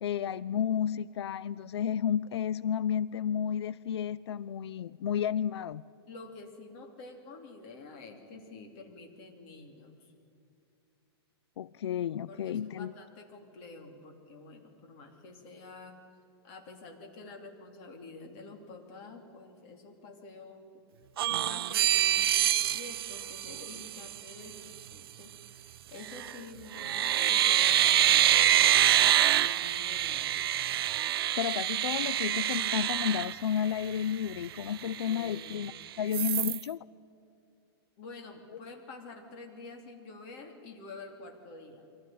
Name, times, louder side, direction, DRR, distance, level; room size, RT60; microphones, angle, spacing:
voice 1, 0.0-5.8 11.6-12.9 31.4-35.7 36.0-36.8, left 9 dB, 90° left, 19 dB, 0.5 m, -32 dB
voice 2, 6.1-10.1 12.3-16.0 16.4-20.6 21.3-30.4 35.0-35.6 38.0-42.0, left 3 dB, 35° left, 3 dB, 3.0 m, -48 dB
sound 1, 21.2-24.2 26.0-26.4 26.7-34.0 34.4-34.5 34.8-35.7 36.1-36.6, right 12 dB, 65° right, 0.5 m, -26 dB
24.0 x 16.0 x 9.4 m, 2.7 s
supercardioid pair, 170°, 13 cm